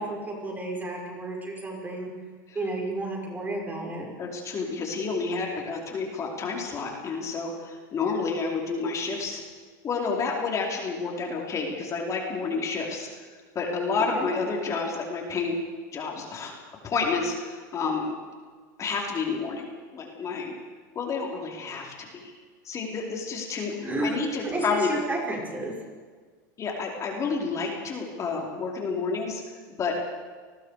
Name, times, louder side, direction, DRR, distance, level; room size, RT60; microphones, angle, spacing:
voice 1, 0.0-2.1 2.5-4.1 14.1-14.3 23.8-25.7, right 2 dB, 15° right, 0 dB, 5.7 m, -32 dB
voice 2, 4.2-9.4 9.8-13.1 13.5-15.6 15.9-16.5 16.8-18.2 18.8-20.5 20.9-21.9 22.2-22.3 22.6-25.0 26.6-29.4 29.8-30.0, left 4 dB, 30° left, 0 dB, 4.8 m, -30 dB
29.5 x 21.0 x 5.1 m, 1.5 s
supercardioid pair, 115°, 10 cm